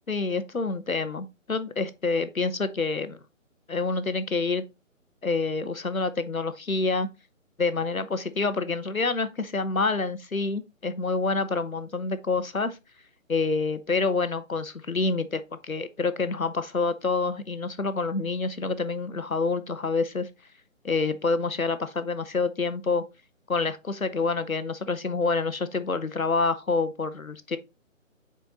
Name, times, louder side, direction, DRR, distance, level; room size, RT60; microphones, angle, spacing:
voice 1, 0.1-3.2 3.7-4.6 5.2-7.1 7.6-12.8 13.3-20.3 20.8-23.0 23.5-27.6, left 3 dB, 85° left, 1.0 m, -27 dB
6.4 x 4.5 x 4.1 m
figure-of-eight pair, 150°, 40 cm